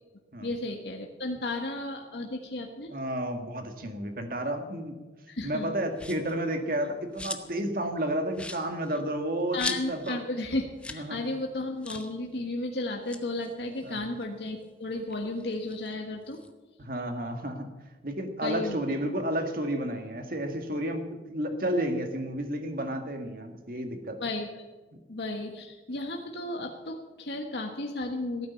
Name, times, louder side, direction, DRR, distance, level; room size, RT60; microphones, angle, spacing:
voice 1, 0.4-2.9 5.3-5.7 9.5-16.4 18.4-18.8 24.2-24.5 25.1-28.5, left 2 dB, 75° left, 2 dB, 1.4 m, -34 dB
voice 2, 2.9-5.0 5.4-10.2 10.9-11.3 13.8-14.0 16.8-17.7 18.0-24.2 24.9-25.0, right 1 dB, 55° right, 5 dB, 1.9 m, -31 dB
sound 1, 5.9-6.4 6.8-7.6 7.9-8.0 8.3-10.2 10.5-10.6 10.8-11.1 11.3-11.4 11.8-12.1 12.9-14.6 15.0-16.5, left 2 dB, 5° left, 0.8 m, -40 dB
16.0 x 9.4 x 7.0 m, 1.2 s
head